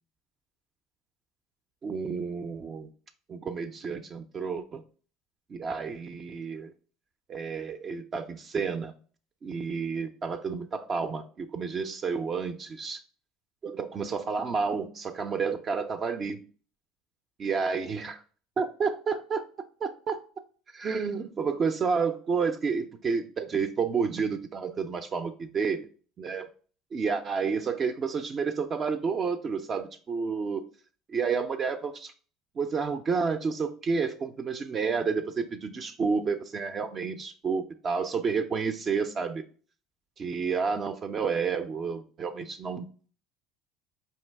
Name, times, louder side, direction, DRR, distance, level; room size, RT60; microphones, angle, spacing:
voice 1, 1.8-2.9 3.3-4.8 5.5-6.7 7.3-8.9 9.4-13.0 13.6-16.4 17.4-18.2 18.6-19.4 19.8-20.2 20.7-25.9 26.2-26.5 26.9-30.6 31.1-32.1 32.6-39.4 40.2-43.1, right 5 dB, 35° right, 0.4 m, -30 dB
4.5 x 2.8 x 3.2 m
supercardioid pair, 115°, 0 cm